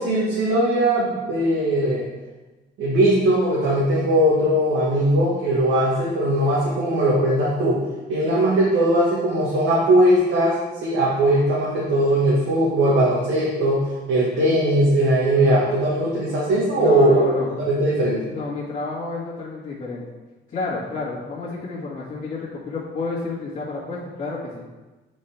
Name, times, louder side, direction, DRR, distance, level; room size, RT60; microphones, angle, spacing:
voice 1, 0.0-2.0 2.8-7.8 8.1-18.2, right 1 dB, 80° right, -6 dB, 1.4 m, -19 dB
voice 2, 16.7-17.5 18.3-20.0 20.5-24.7, left 3 dB, 40° left, -9 dB, 1.7 m, -30 dB
7.3 x 4.3 x 3.4 m, 1.2 s
cardioid pair, 90°, 20 cm